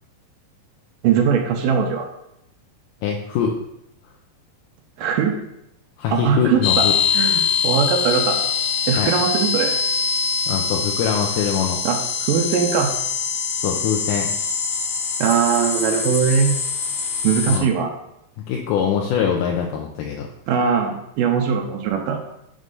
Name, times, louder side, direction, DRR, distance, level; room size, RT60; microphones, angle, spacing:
voice 1, 1.0-2.1 5.0-5.4 6.1-6.9 7.1-8.4 8.9-9.7 11.9-12.0 12.2-12.9 15.2-16.6 17.2-17.9 20.5-22.2, right 7 dB, 80° right, 2 dB, 2.3 m, -20 dB
voice 2, 3.0-3.6 6.0-7.0 9.0-9.1 10.5-11.8 13.6-14.3 17.5-17.7 18.5-20.3, left 8 dB, 80° left, 0 dB, 2.0 m, -23 dB
sound 1, 6.6-17.6, left 6 dB, 65° left, 1.7 m, -23 dB
6.4 x 3.2 x 5.3 m, 0.80 s
omnidirectional pair, 3.9 m